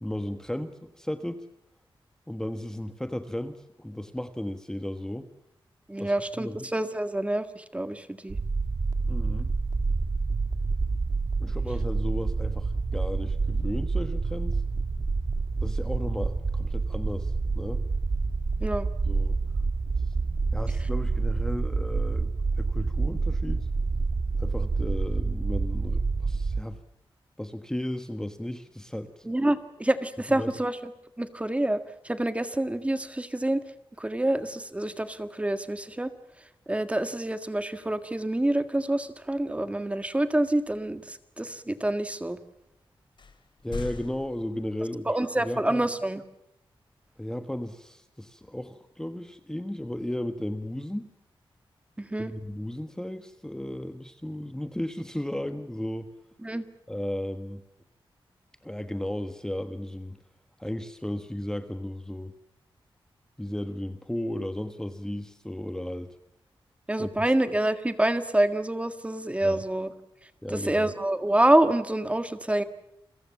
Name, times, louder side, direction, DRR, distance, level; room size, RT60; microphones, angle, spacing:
voice 1, 0.0-1.4 2.3-5.3 6.0-6.7 9.0-9.5 11.4-14.6 15.6-17.8 19.0-19.4 20.0-20.1 20.5-23.7 24.4-26.8 27.4-29.3 30.3-30.5 43.6-45.9 47.2-51.0 52.2-56.1 56.9-57.6 58.6-60.2 60.6-62.3 63.4-66.1 67.0-67.1 69.4-69.6 70.4-70.9, left 1 dB, 5° left, 8 dB, 1.3 m, -35 dB
voice 2, 5.9-8.4 18.6-18.9 29.3-30.8 31.2-33.6 34.0-36.1 36.7-42.4 45.1-46.2 52.0-52.3 56.4-56.6 66.9-69.9 70.5-72.6, right 1 dB, 15° right, 10 dB, 1.7 m, -27 dB
sound 1, 8.3-26.6, right 3 dB, 45° right, 1.8 m, -28 dB
sound 2, 39.2-39.5 40.6-41.0 41.6-41.7 42.6-42.7 43.2-45.1, left 4 dB, 60° left, 2.8 m, -42 dB
29.5 x 23.0 x 7.2 m, 0.81 s
wide cardioid pair, 120°, 9 cm